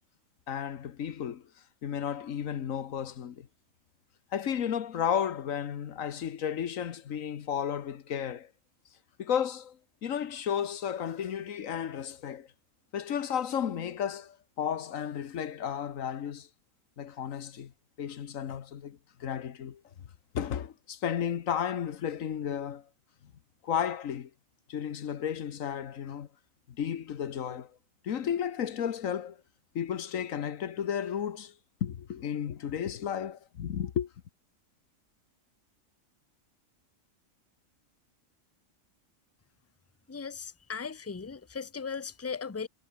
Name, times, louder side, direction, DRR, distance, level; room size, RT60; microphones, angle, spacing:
voice 1, 0.5-1.4 1.8-3.5 4.3-8.5 9.2-12.5 12.9-16.5 17.0-17.7 18.0-19.8 20.3-22.8 23.2-23.3 23.6-24.3 24.7-26.3 26.7-27.7 28.0-29.4 29.7-31.5 31.8-34.1, left 8 dB, 80° left, 1.4 m, -33 dB
voice 2, 40.1-42.7, left 5 dB, 15° left, 0.5 m, -37 dB
omnidirectional pair, 1.4 m